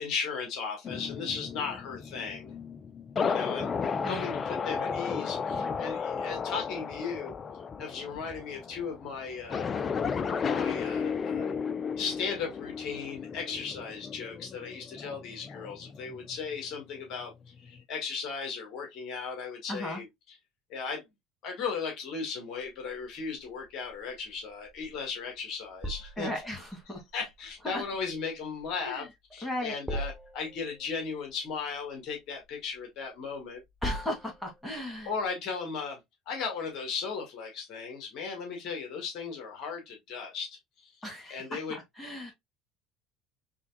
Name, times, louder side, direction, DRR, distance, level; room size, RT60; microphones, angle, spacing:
voice 1, 0.0-2.5 3.2-3.7 4.0-7.3 7.8-9.7 10.3-11.6 12.0-17.3 17.6-20.4 20.7-21.0 21.4-26.3 26.9-33.6 35.0-36.0 36.3-41.0 41.3-41.8, left 5 dB, 60° left, 1.6 m, -36 dB
sound 1, 0.8-16.7 17.1-17.8, left 6 dB, 35° left, 0.4 m, -34 dB
voice 2, 19.7-20.0 26.2-27.0 27.6-27.8 28.8-29.0 29.4-29.8 33.8-35.1 41.0-41.4 42.0-42.3, left 1 dB, 10° left, 2.3 m, -36 dB
sound 2, 22.6-35.3, right 1 dB, 10° right, 1.1 m, -43 dB
3.8 x 3.4 x 2.2 m
hypercardioid pair, 70°, 0 cm